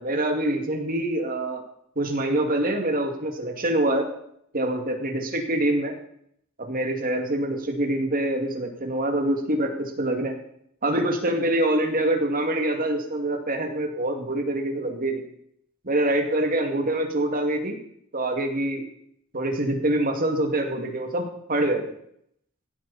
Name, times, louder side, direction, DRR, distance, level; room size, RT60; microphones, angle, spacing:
voice 1, 0.0-1.6 2.0-4.1 4.5-5.9 6.6-10.4 10.8-15.2 15.8-17.8 18.1-18.9 19.3-21.8, right 1 dB, 45° right, 3 dB, 2.4 m, -25 dB
16.5 x 13.0 x 4.3 m, 0.70 s
head